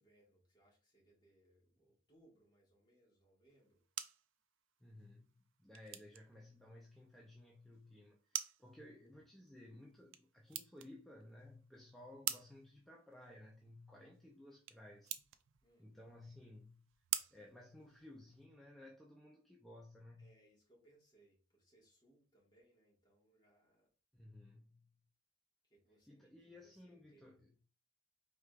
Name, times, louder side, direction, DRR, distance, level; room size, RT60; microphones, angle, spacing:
voice 1, 0.0-3.8 15.6-15.9 20.2-23.9 25.6-27.5, right 1 dB, 25° left, 1.7 m, -71 dB
sound 1, 3.5-18.5, right 12 dB, 85° right, 0.4 m, -49 dB
voice 2, 4.8-15.2 15.8-16.9 17.3-20.3 24.1-24.9 26.1-27.5, left 1 dB, ahead, 0.4 m, -57 dB
4.8 x 3.4 x 2.4 m
head